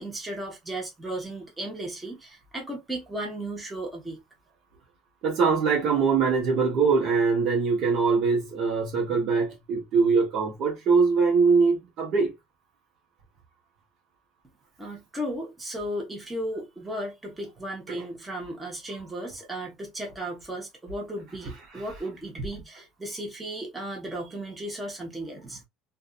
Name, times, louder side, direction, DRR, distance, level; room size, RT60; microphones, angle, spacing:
voice 1, 0.0-4.2 14.8-25.6, right 1 dB, 10° right, 1.0 m, -35 dB
voice 2, 5.2-12.3 17.9-18.1 21.7-21.8, right 5 dB, 50° right, 0.9 m, -23 dB
2.5 x 2.4 x 2.5 m
cardioid pair, 140°, 0 cm